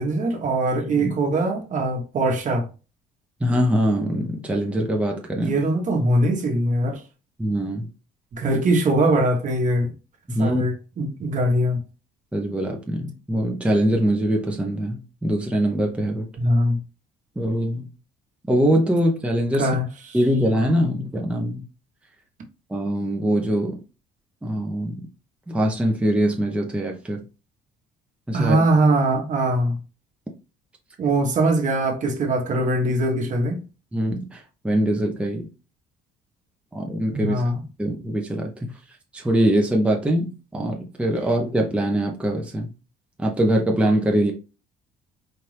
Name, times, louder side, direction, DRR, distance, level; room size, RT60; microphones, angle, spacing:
voice 1, 0.0-2.7 5.4-7.0 8.3-9.9 10.4-11.8 16.4-16.8 19.6-20.2 28.3-29.8 31.0-33.6 37.1-37.6, right 1 dB, 50° right, 1.2 m, -22 dB
voice 2, 0.8-1.1 3.4-5.5 7.4-7.9 10.3-10.6 12.3-16.3 17.4-17.9 18.5-19.8 20.1-21.6 22.7-23.8 24.4-25.0 25.5-27.2 28.3-28.6 33.9-35.5 36.7-37.4 37.8-38.7 39.1-42.7 43.2-44.3, right 1 dB, 5° right, 0.7 m, -23 dB
4.5 x 2.5 x 3.3 m
cardioid pair, 110°, 17 cm